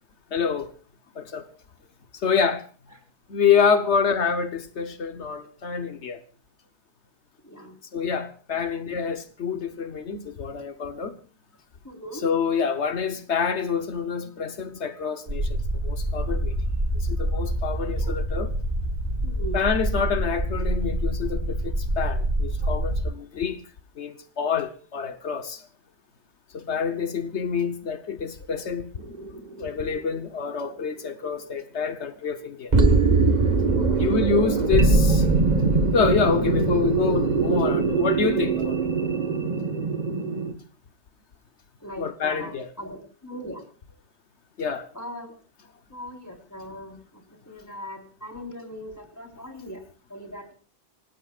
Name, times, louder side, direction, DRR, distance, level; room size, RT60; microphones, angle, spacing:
voice 1, 0.3-0.7 1.1-1.5 2.1-2.6 3.3-6.2 7.9-11.1 12.2-16.6 16.9-18.5 19.5-23.6 24.0-25.7 26.5-28.9 29.6-32.7 34.0-35.3 35.9-38.8 42.0-42.7 44.6-44.9, left 6 dB, 85° left, 1.3 m, -27 dB
voice 2, 7.4-7.8 11.8-12.3 17.9-18.1 19.2-19.6 22.6-22.8 33.7-34.1 41.8-43.6 44.9-45.3 45.9-49.8 50.1-50.5, equal, 15° left, 4.3 m, -39 dB
sound 1, 15.3-23.0, right 1 dB, 70° right, 7.8 m, -26 dB
sound 2, 29.0-29.6 30.1-30.2 32.7-40.5, right 3 dB, 40° right, 1.7 m, -22 dB
27.0 x 18.5 x 2.4 m
omnidirectional pair, 1.1 m